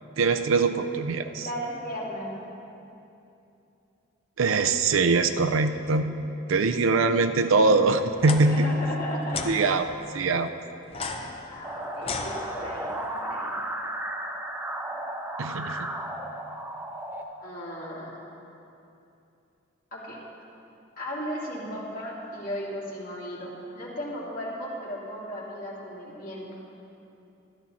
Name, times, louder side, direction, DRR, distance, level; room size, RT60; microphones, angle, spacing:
voice 1, 0.2-1.5 4.4-6.1 6.5-8.7 9.5-10.5 15.4-15.9, right 3 dB, 75° right, 9 dB, 0.5 m, -23 dB
voice 2, 1.4-2.4 8.4-9.8 11.5-13.5 14.8-15.0 17.4-18.1 19.9-20.2 21.0-26.5, equal, 45° left, -6 dB, 2.7 m, -36 dB
sound 1, 8.1-8.4 9.3-9.5 10.9-12.9, left 4 dB, 30° left, 0.7 m, -34 dB
sound 2, 11.6-17.2, right 1 dB, 10° right, 0.6 m, -34 dB
13.5 x 11.5 x 4.1 m, 2.8 s
head